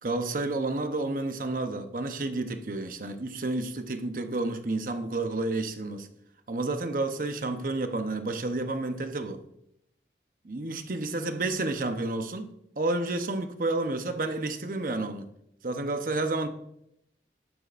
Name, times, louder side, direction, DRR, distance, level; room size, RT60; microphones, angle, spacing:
voice 1, 0.0-6.1 6.5-9.4 10.4-12.5 12.8-15.3 15.6-16.5, right 2 dB, 50° right, 0.8 m, -30 dB
12.0 x 10.0 x 2.5 m
head